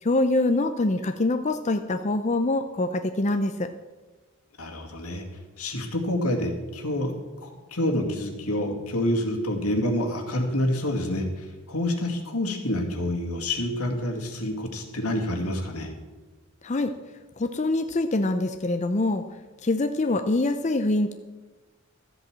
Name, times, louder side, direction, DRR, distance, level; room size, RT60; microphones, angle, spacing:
voice 1, 0.0-3.7 16.6-16.9 17.4-19.2 19.6-21.1, left 2 dB, 30° left, 7 dB, 0.5 m, -24 dB
voice 2, 4.6-5.2 5.6-7.1 7.4-15.9, left 1 dB, 85° left, 2 dB, 2.2 m, -27 dB
13.0 x 8.1 x 7.4 m, 1.3 s
head